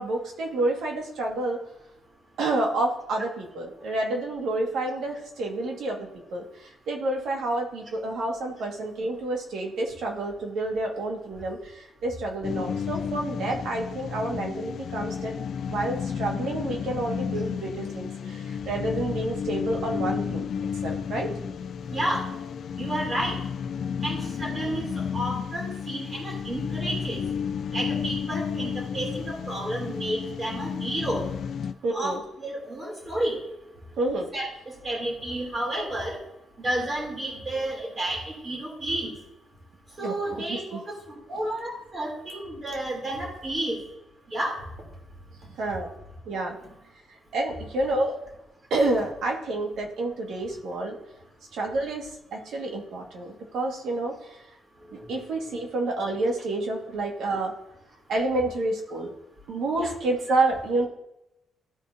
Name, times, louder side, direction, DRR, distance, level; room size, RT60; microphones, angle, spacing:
voice 1, 0.0-1.6 2.4-15.3 15.7-20.5 20.8-21.3 31.8-32.2 34.0-34.3 40.0-40.8 45.6-45.9 46.3-46.6 47.3-48.1 48.7-51.0 51.5-54.4 54.9-57.5 58.1-59.1 59.5-60.9, right 2 dB, 75° right, 1 dB, 1.9 m, -29 dB
sound 1, 12.4-31.7, left 7 dB, 60° left, 0.4 m, -32 dB
voice 2, 21.9-22.3 22.8-23.4 24.0-24.9 25.1-27.2 27.7-31.3 31.9-33.4 34.3-36.2 36.6-39.1 40.0-43.8 44.3-44.6 59.8-59.9, right 1 dB, 30° right, -1 dB, 3.3 m, -31 dB
14.0 x 4.7 x 2.8 m, 0.85 s
cardioid pair, 90°, 0 cm